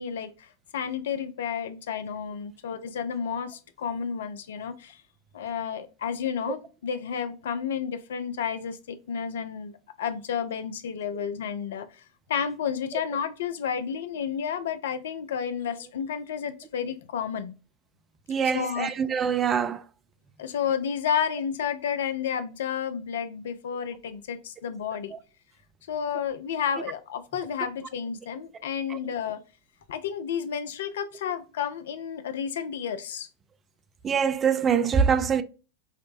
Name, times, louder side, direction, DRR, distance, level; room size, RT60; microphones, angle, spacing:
voice 1, 0.0-5.0 5.3-12.0 12.3-17.5 18.4-18.9 20.4-25.1 25.9-29.4 29.9-33.3, left 7 dB, 60° left, 0.4 m, -31 dB
voice 2, 18.3-19.8 25.1-25.2 28.9-29.1 34.0-35.4, right 7 dB, 20° right, 0.3 m, -24 dB
4.9 x 2.0 x 2.5 m
figure-of-eight pair, 90°, 0 cm